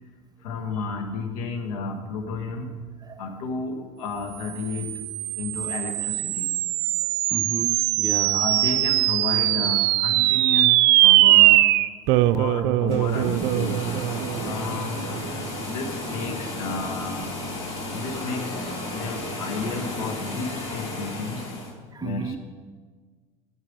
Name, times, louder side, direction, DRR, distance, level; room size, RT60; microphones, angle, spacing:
voice 1, 0.4-2.7 3.2-6.6 8.3-11.6 12.3-13.9 14.4-15.1 15.6-17.3 17.9-21.5 22.0-22.4, left 4 dB, 85° left, 5 dB, 1.5 m, -32 dB
sound 1, 4.6-15.3, right 17 dB, 65° right, 0.5 m, -21 dB
voice 2, 7.3-8.4 12.1-12.3 21.9-22.4, right 4 dB, 20° right, 8 dB, 0.8 m, -33 dB
sound 2, 12.8-21.7, left 1 dB, 30° left, 4.4 m, -33 dB
11.0 x 9.5 x 5.3 m, 1.5 s
supercardioid pair, 90°, 19 cm